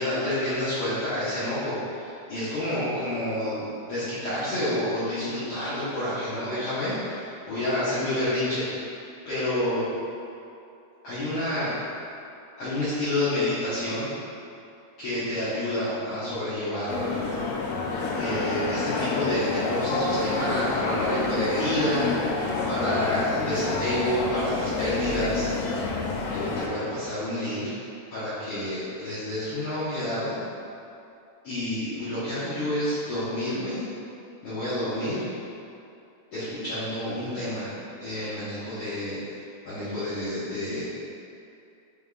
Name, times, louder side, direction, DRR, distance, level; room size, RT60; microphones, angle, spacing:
voice 1, 0.0-8.7 9.3-9.9 11.0-11.7 12.6-14.1 15.0-17.2 18.1-25.5 26.3-27.7 28.1-30.4 31.4-33.8 34.4-35.3 36.3-37.7 38.0-39.2 39.6-40.8, left 1 dB, 65° left, -13 dB, 1.6 m, -29 dB
sound 1, 16.9-26.7, left 3 dB, 85° left, 2.0 m, -28 dB
4.9 x 3.5 x 2.3 m, 2.6 s
omnidirectional pair, 3.3 m